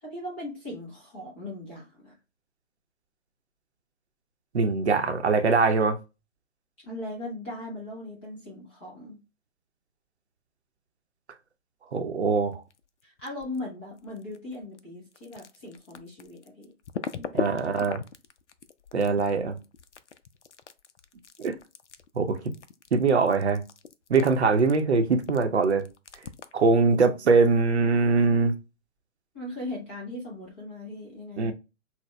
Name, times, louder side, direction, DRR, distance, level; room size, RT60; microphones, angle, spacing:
voice 1, 0.0-2.1 6.8-9.2 13.0-16.7 17.2-17.6 29.3-31.5, left 1 dB, 10° left, 0.5 m, -39 dB
voice 2, 4.5-6.0 11.9-12.6 17.3-18.0 18.9-19.6 21.4-21.6 22.2-22.4 22.9-23.6 24.1-25.9 26.5-28.5 31.4-31.5, right 4 dB, 60° right, 0.7 m, -22 dB
sound 1, 12.5-13.6 13.9-26.7, left 7 dB, 65° left, 0.5 m, -39 dB
5.7 x 2.1 x 2.2 m
figure-of-eight pair, 135°, 38 cm